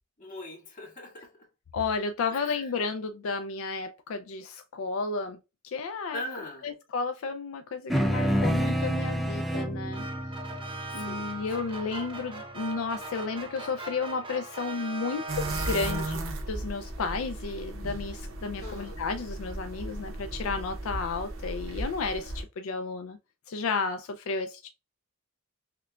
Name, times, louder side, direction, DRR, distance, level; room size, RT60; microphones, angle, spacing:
voice 1, 0.2-1.5 2.3-2.7 6.1-6.7 10.9-11.8 18.6-19.0, left 1 dB, 40° left, 1.8 m, -41 dB
voice 2, 1.7-5.4 5.6-6.2 6.6-10.0 10.9-23.2 23.5-24.7, left 4 dB, 80° left, 0.4 m, -32 dB
sound 1, 7.9-12.6, equal, ahead, 0.4 m, -29 dB
sound 2, 9.9-16.5, right 2 dB, 25° right, 0.7 m, -39 dB
sound 3, 15.3-22.4, right 1 dB, 75° right, 0.8 m, -36 dB
5.8 x 2.2 x 2.3 m
head